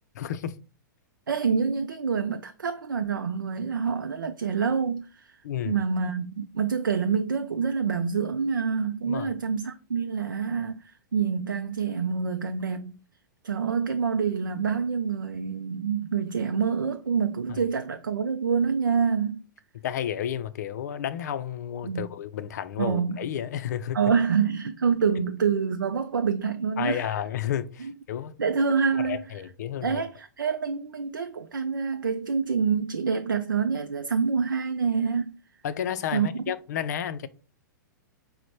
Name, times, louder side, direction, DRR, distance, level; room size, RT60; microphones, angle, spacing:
voice 1, 0.2-0.6 5.4-5.8 9.1-9.3 17.5-17.6 19.8-24.0 26.8-28.3 29.0-30.0 35.6-37.3, left 10 dB, 55° left, 0.4 m, -31 dB
voice 2, 1.3-5.4 5.6-13.0 13.4-19.4 21.8-22.1 22.8-23.2 23.9-27.1 27.8-27.9 28.4-29.2 29.8-35.4 36.1-36.3, right 6 dB, 75° right, 0.4 m, -27 dB
5.0 x 2.1 x 4.3 m
figure-of-eight pair, 105°, 11 cm